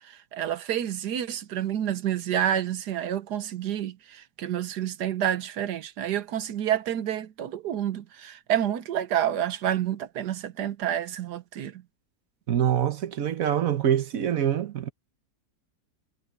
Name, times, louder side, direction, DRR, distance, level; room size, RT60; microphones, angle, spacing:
voice 1, 0.0-11.8, right 10 dB, 80° right, 1.5 m, -29 dB
voice 2, 12.5-14.9, right 10 dB, 60° right, 1.3 m, -25 dB
omnidirectional pair, 1.7 m